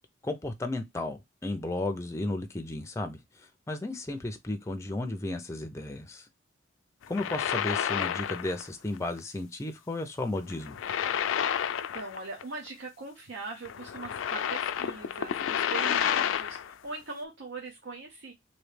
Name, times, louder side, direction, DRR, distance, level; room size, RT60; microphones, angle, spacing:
voice 1, 0.2-3.2 3.7-6.2 7.1-10.8, left 2 dB, 15° left, 0.4 m, -34 dB
sound 1, 7.0-8.7 9.0-9.2 10.5-12.4 12.7-12.8 13.6-16.7, left 9 dB, 80° left, 0.3 m, -30 dB
voice 2, 11.7-18.3, right 3 dB, 75° right, 0.7 m, -41 dB
3.1 x 2.7 x 3.2 m
head